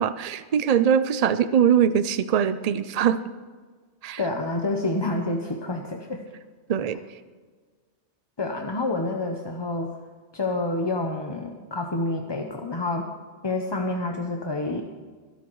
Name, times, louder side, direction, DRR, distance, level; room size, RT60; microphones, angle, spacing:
voice 1, 0.0-3.2 4.0-4.2 6.7-7.0, right 8 dB, 70° right, 12 dB, 0.3 m, -22 dB
voice 2, 4.2-6.2 8.4-9.9 10.3-13.1 13.4-14.8, left 2 dB, 25° left, 2 dB, 0.7 m, -28 dB
22.5 x 12.5 x 3.1 m, 1.5 s
omnidirectional pair, 1.2 m